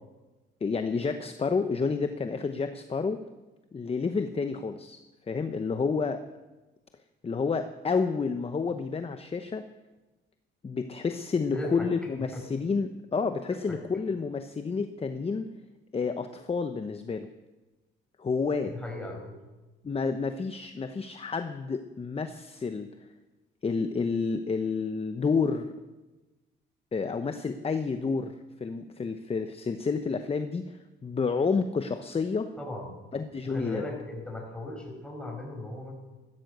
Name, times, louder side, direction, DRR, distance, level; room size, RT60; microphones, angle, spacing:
voice 1, 0.6-3.2 3.7-5.0 5.3-6.2 7.2-9.6 10.6-15.5 15.9-17.3 18.2-18.7 19.8-22.9 23.6-25.7 26.9-28.3 28.6-32.5 33.1-33.8, left 5 dB, 30° left, 8 dB, 1.0 m, -30 dB
voice 2, 11.5-11.9 12.3-12.4 13.5-13.8 18.6-19.3 32.6-33.0 33.4-35.9, left 2 dB, 5° left, 0 dB, 6.1 m, -37 dB
15.5 x 13.0 x 6.8 m, 1.1 s
cardioid pair, 90°, 20 cm